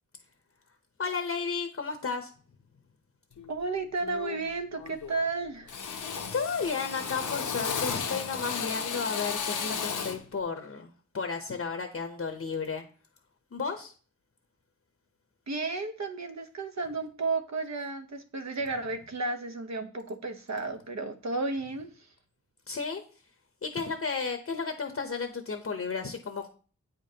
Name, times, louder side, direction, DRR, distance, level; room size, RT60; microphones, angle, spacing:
voice 1, 1.0-2.3 6.0-12.8 13.5-13.9 22.7-23.0 23.6-26.5, left 5 dB, 50° left, 5 dB, 0.8 m, -33 dB
Drill, 3.4-3.6 4.0-4.5 4.8-5.3 5.7-10.3, left 6 dB, 75° left, 0.8 m, -34 dB
voice 2, 3.5-5.7 15.5-21.9, right 3 dB, 60° right, 7 dB, 0.9 m, -33 dB
8.5 x 5.1 x 2.8 m, 0.40 s
wide cardioid pair, 80°, 31 cm